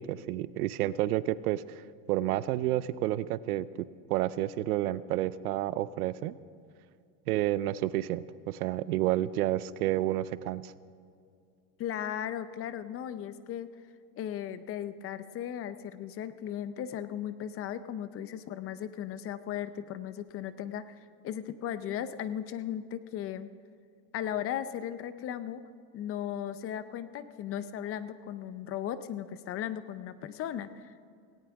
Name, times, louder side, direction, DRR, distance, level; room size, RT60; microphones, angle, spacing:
voice 1, 0.0-1.8 2.1-6.4 7.3-10.7, right 14 dB, 90° right, 17 dB, 0.7 m, -30 dB
voice 2, 11.8-13.7 14.2-21.0 21.2-23.5 24.1-25.6 25.9-31.1, left 10 dB, 30° left, 13 dB, 0.6 m, -36 dB
18.0 x 17.5 x 3.5 m, 2.4 s
supercardioid pair, 135°, 43 cm